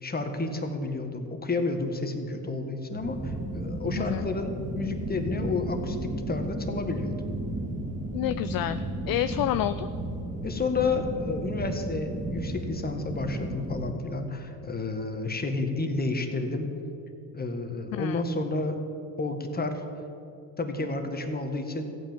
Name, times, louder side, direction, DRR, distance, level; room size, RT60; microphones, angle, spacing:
voice 1, 0.0-7.1 10.4-16.7 17.3-18.8 19.2-19.8 20.6-21.8, left 3 dB, 20° left, 6 dB, 1.7 m, -31 dB
sound 1, 2.9-13.9, right 1 dB, 15° right, 2.1 m, -34 dB
voice 2, 8.1-8.8 9.1-9.9 17.9-18.2, left 13 dB, 50° left, 12 dB, 0.5 m, -28 dB
14.5 x 9.0 x 7.3 m, 2.8 s
supercardioid pair, 90°, 46 cm